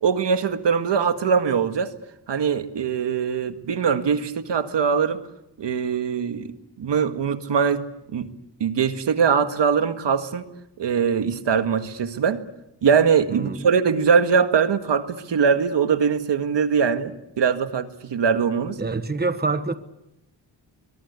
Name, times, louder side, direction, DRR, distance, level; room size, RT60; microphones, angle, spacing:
voice 1, 0.0-1.9 2.3-5.2 5.6-7.8 8.1-8.3 8.6-10.5 10.8-12.4 12.8-18.8, right 6 dB, 80° right, 1.9 m, -22 dB
voice 2, 18.8-19.7, right 3 dB, 25° right, 1.3 m, -25 dB
24.0 x 23.0 x 8.3 m
wide cardioid pair, 105°, 42 cm